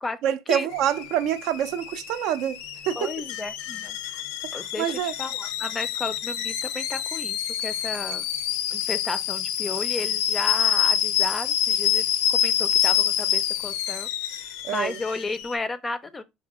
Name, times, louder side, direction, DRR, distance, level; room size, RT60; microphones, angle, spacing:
voice 1, 0.2-2.6 2.9-3.1 4.0-4.2 4.5-5.1 14.6-15.0, right 10 dB, 65° right, 0.4 m, -26 dB
Alarm / Boiling, 0.7-15.5, left 10 dB, 85° left, 0.5 m, -27 dB
voice 2, 3.0-4.0 4.5-8.3 8.7-14.1 14.4-16.2, left 3 dB, 15° left, 0.4 m, -33 dB
4.9 x 2.4 x 3.5 m
cardioid pair, 145°, 0 cm